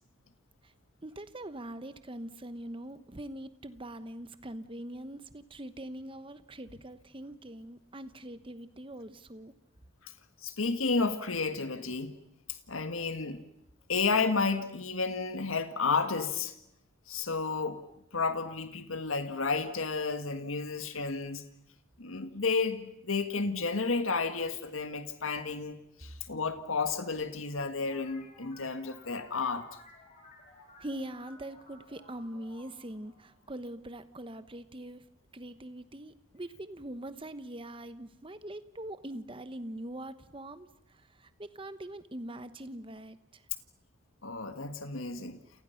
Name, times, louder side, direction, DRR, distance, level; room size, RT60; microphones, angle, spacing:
voice 1, 1.0-9.5 30.8-35.0 35.3-43.4, right 1 dB, 25° right, 12 dB, 1.0 m, -43 dB
voice 2, 10.4-12.1 12.7-13.4 13.9-16.5 17.1-17.8 18.1-21.4 22.0-29.7 44.2-45.4, left 4 dB, 90° left, 8 dB, 1.8 m, -32 dB
sound 1, 27.8-34.1, left 2 dB, 40° left, 5.1 m, -56 dB
29.0 x 29.0 x 5.8 m, 0.75 s
head